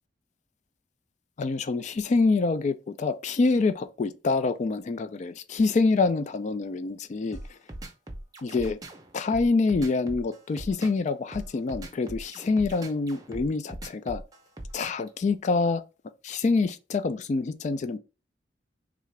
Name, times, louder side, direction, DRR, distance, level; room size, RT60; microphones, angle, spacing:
voice 1, 1.4-7.4 8.4-8.8 9.1-14.2 14.7-15.8 16.2-18.0, left 3 dB, 40° left, 0.3 m, -26 dB
sound 1, 7.3-15.1, right 1 dB, 20° right, 0.6 m, -40 dB
3.6 x 2.4 x 3.2 m
head